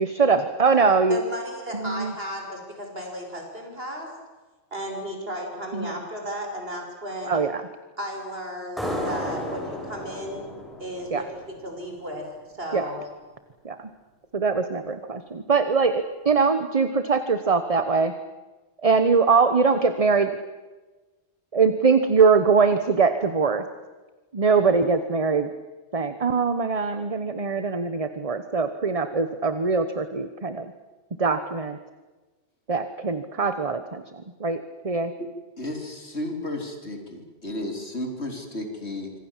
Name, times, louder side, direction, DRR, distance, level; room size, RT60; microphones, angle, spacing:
voice 1, 0.0-1.2 1.7-2.1 5.7-6.0 7.2-7.6 11.1-11.2 12.7-12.9 13.6-13.9 14.3-18.1 18.8-20.3 21.5-23.6 24.3-25.5 25.9-30.7 31.2-31.8 32.7-34.0 34.4-35.1, right 5 dB, 30° right, 10 dB, 1.1 m, -22 dB
voice 2, 1.1-4.1 4.7-7.4 8.0-10.5 10.8-12.3 12.6-13.0, equal, 55° right, 2 dB, 6.3 m, -34 dB
sound 1, 8.8-12.1, equal, ahead, 6.5 m, -33 dB
voice 3, 35.6-39.1, left 1 dB, 65° left, 4 dB, 4.0 m, -33 dB
26.0 x 25.5 x 7.4 m, 1.2 s
omnidirectional pair, 1.2 m